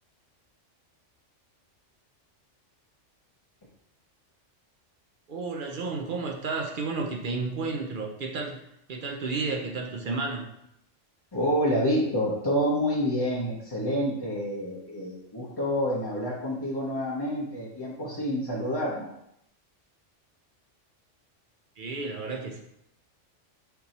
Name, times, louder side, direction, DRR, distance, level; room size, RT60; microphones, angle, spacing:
voice 1, 5.3-8.6 8.9-10.5 21.8-22.6, right 3 dB, 55° right, 1 dB, 0.6 m, -32 dB
voice 2, 11.3-19.1, equal, 25° left, -7 dB, 0.6 m, -28 dB
4.5 x 2.7 x 4.1 m, 0.77 s
omnidirectional pair, 1.3 m